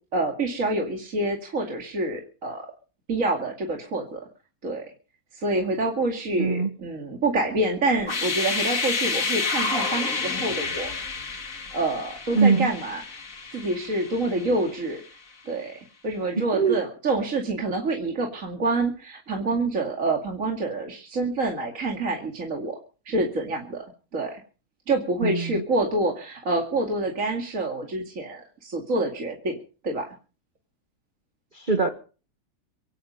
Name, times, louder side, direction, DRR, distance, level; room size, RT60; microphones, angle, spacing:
voice 1, 0.1-2.7 3.1-4.2 4.6-4.8 5.3-10.9 11.7-13.2 13.5-15.0 15.5-22.8 23.1-23.8 24.1-24.4 24.9-29.6 29.8-30.1, right 2 dB, 50° right, 1 dB, 2.7 m, -27 dB
voice 2, 6.4-6.7 12.3-12.7 16.4-16.8 25.2-25.6 31.5-31.9, right 5 dB, 30° right, 5 dB, 1.6 m, -22 dB
sound 1, 8.0-14.9, left 4 dB, 55° left, 2.2 m, -29 dB
25.0 x 10.0 x 5.4 m, 0.39 s
omnidirectional pair, 1.7 m